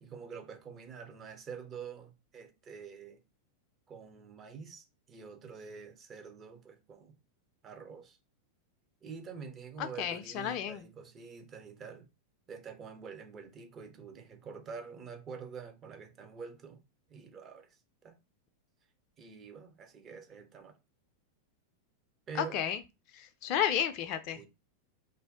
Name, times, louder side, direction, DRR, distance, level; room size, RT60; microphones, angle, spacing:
voice 1, 0.0-3.2 3.9-7.1 7.6-8.2 9.0-12.1 12.5-16.8 17.1-18.2 19.2-20.8 22.3-22.6 24.3-24.5, right 6 dB, 25° right, 0.6 m, -47 dB
voice 2, 9.8-10.8 22.4-22.8 23.1-24.5, left 9 dB, 40° left, 0.4 m, -32 dB
2.6 x 2.0 x 3.6 m
figure-of-eight pair, 90°, 0 cm